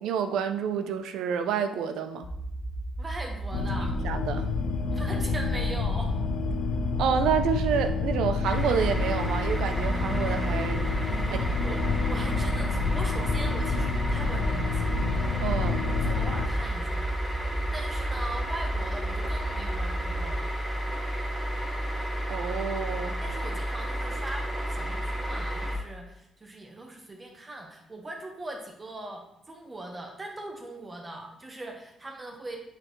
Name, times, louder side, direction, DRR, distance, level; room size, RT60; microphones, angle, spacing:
voice 1, 0.0-2.3 4.0-4.5 7.0-10.9 11.7-11.9 15.4-15.8 22.3-23.1, right 7 dB, 85° right, 8 dB, 0.5 m, -28 dB
sound 1, 2.2-20.4, right 2 dB, 50° left, 1.8 m, -35 dB
voice 2, 3.0-3.9 4.9-6.1 11.1-15.1 15.9-17.1 17.4-20.6 23.2-32.6, right 1 dB, 25° right, 1 dB, 1.0 m, -40 dB
sound 2, 3.5-16.5, left 5 dB, 80° left, 0.6 m, -29 dB
sound 3, 8.4-25.8, right 1 dB, 5° left, 2.1 m, -32 dB
7.6 x 4.3 x 3.1 m, 0.81 s
cardioid pair, 90°, 0 cm